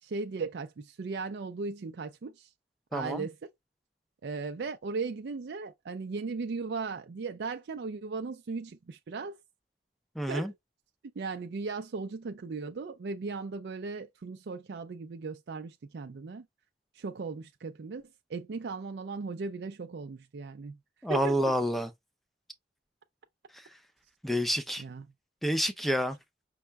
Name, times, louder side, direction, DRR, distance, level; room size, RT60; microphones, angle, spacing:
voice 1, 0.0-2.5 2.9-3.4 4.2-9.4 10.3-10.6 11.2-16.5 16.9-20.8 21.1-21.5 24.8-25.1, right 4 dB, 75° right, 0.4 m, -37 dB
voice 2, 2.9-3.3 10.2-10.5 21.0-21.9 24.2-24.8 25.4-26.2, equal, ahead, 0.5 m, -28 dB
5.5 x 2.1 x 3.4 m
head